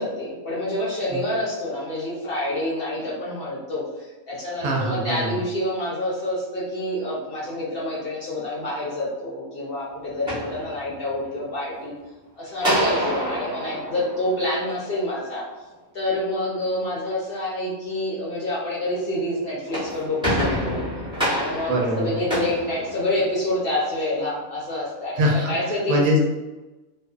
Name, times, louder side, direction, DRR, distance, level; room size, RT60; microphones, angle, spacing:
voice 1, 0.0-11.9 12.4-15.5 15.9-20.8 21.3-26.0, left 1 dB, 60° left, -6 dB, 0.6 m, -27 dB
voice 2, 4.6-5.4 21.7-22.3 25.2-26.2, equal, 80° right, -1 dB, 1.1 m, -23 dB
sound 1, 10.1-11.3 12.6-15.1 19.5-23.6, equal, 5° right, 0.7 m, -28 dB
2.5 x 2.4 x 2.2 m, 1.1 s
omnidirectional pair, 1.5 m